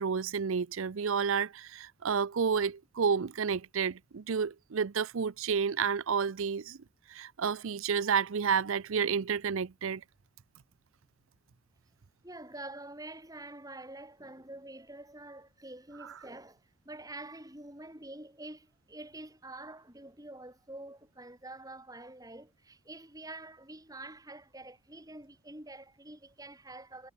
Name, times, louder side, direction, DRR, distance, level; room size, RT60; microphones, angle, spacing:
voice 1, 0.0-6.8 7.1-10.0, right 6 dB, 70° right, 0.5 m, -30 dB
voice 2, 12.2-27.1, right 2 dB, 15° right, 4.5 m, -47 dB
head